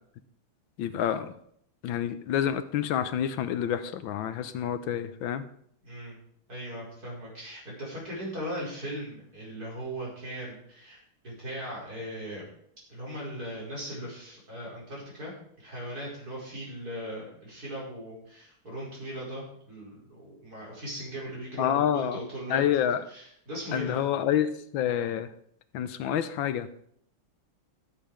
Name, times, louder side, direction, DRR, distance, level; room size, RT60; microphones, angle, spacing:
voice 1, 0.8-1.4 1.8-5.4 21.6-22.2 22.5-23.0 23.7-25.3 25.7-26.7, left 10 dB, 70° left, 12 dB, 1.4 m, -28 dB
voice 2, 5.8-6.1 6.5-12.4 12.9-15.3 15.6-22.6 23.1-24.0, equal, 45° right, -5 dB, 5.8 m, -38 dB
13.5 x 7.6 x 5.0 m, 0.67 s
omnidirectional pair, 2.3 m